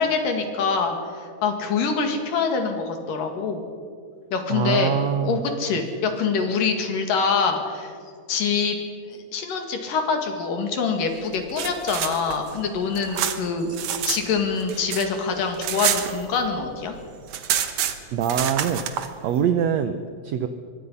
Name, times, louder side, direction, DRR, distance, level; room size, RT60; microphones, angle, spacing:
voice 1, 0.0-3.6 4.3-4.9 5.2-7.9 8.3-8.8 9.1-13.8 14.1-16.9, left 5 dB, 70° left, 4 dB, 3.7 m, -25 dB
voice 2, 4.5-5.4 18.1-18.8 19.2-20.0 20.2-20.5, right 8 dB, 75° right, 9 dB, 1.5 m, -23 dB
sound 1, 11.3-14.2 14.5-16.7 16.9-17.0 17.3-19.1, right 9 dB, 60° right, 2.2 m, -28 dB
25.0 x 22.5 x 5.6 m, 2.2 s
omnidirectional pair, 4.0 m